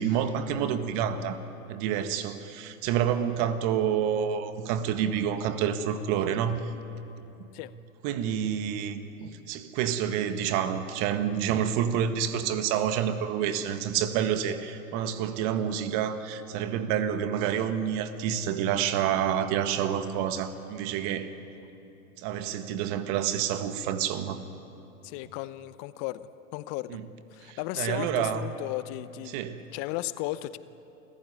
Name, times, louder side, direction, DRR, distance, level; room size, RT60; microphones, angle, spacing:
voice 1, 0.0-1.4 1.7-6.6 8.0-21.3 22.2-24.4 26.9-27.0 27.4-28.5 29.3-29.6, right 9 dB, 50° right, 10 dB, 1.7 m, -28 dB
voice 2, 25.0-27.0 27.3-29.4 29.7-30.6, left 17 dB, 45° left, 15 dB, 0.8 m, -35 dB
27.5 x 15.0 x 9.8 m, 2.9 s
hypercardioid pair, 95°, 40 cm